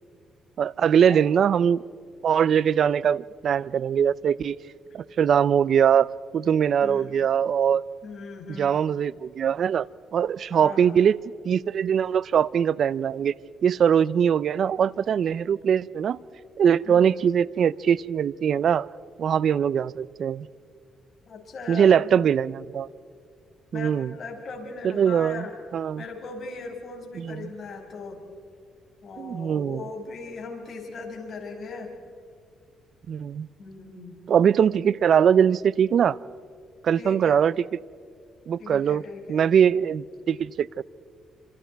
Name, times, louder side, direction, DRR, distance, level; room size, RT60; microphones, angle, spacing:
voice 1, 0.6-1.8 2.2-4.6 4.9-7.8 8.6-9.9 10.1-13.3 13.6-16.2 16.6-18.9 19.2-20.5 21.7-22.9 23.7-24.1 24.8-25.5 25.7-26.0 27.2-27.5 29.2-29.8 33.1-33.5 34.3-36.2 36.8-37.5 38.5-39.0 39.3-40.8, right 8 dB, 60° right, 21 dB, 0.5 m, -22 dB
voice 2, 6.8-7.1 8.0-8.8 10.5-11.0 16.8-17.1 21.3-22.2 23.7-25.5 26.0-28.2 29.0-31.9 33.6-34.1 37.0-37.4 38.6-39.5, left 4 dB, 50° left, 0 dB, 6.1 m, -39 dB
28.5 x 26.0 x 4.7 m, 2.2 s
cardioid pair, 90°, 0 cm